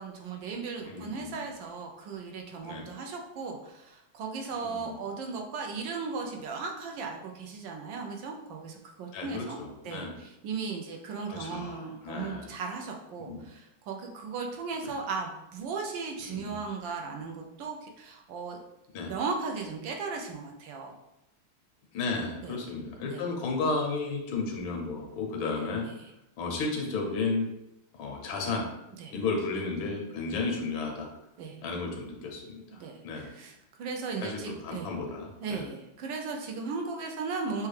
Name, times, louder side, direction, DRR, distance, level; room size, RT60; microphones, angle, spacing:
voice 1, 0.0-9.6 9.8-18.6 19.1-20.9 22.4-22.6 23.0-23.3 25.5-25.7 26.0-26.1 29.0-29.1 31.4-31.6 32.8-34.9 35.4-37.7, right 4 dB, 75° right, 2 dB, 1.3 m, -37 dB
voice 2, 0.8-1.4 2.6-2.9 4.6-5.0 9.1-10.1 11.3-12.6 13.2-13.4 14.8-14.9 16.2-16.6 18.9-19.1 21.9-25.9 26.4-27.5 28.0-28.6 29.1-31.1 31.6-33.3 34.2-35.7, left 3 dB, 85° left, 1 dB, 1.5 m, -33 dB
6.2 x 2.3 x 3.2 m, 0.87 s
omnidirectional pair, 2.2 m